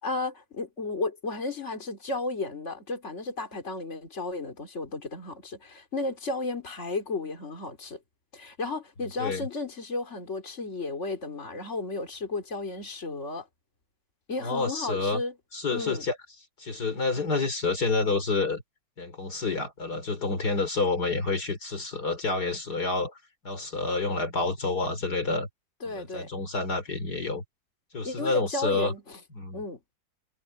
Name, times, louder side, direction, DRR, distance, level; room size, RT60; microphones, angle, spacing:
voice 1, 0.0-8.0 8.3-13.5 14.3-15.3 15.7-16.0 25.8-26.3 28.0-29.2 29.5-29.8, left 3 dB, 40° left, 3.9 m, -33 dB
voice 2, 14.4-15.2 15.5-16.2 16.6-18.6 19.0-23.1 23.4-25.5 25.9-27.4 27.9-28.9 29.3-29.6, left 3 dB, 60° left, 4.0 m, -28 dB
omnidirectional pair, 1.9 m